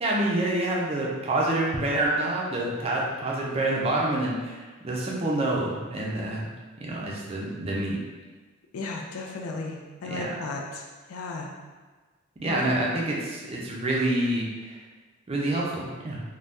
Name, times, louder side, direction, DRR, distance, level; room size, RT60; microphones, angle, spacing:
voice 1, 0.0-6.5 6.8-8.0 10.0-10.4 12.4-14.8 15.3-16.2, right 1 dB, 25° right, -3 dB, 0.4 m, -27 dB
voice 2, 8.7-10.8 11.1-11.5 12.5-12.6, left 3 dB, 90° left, 1 dB, 0.4 m, -35 dB
2.6 x 2.2 x 3.4 m, 1.3 s
head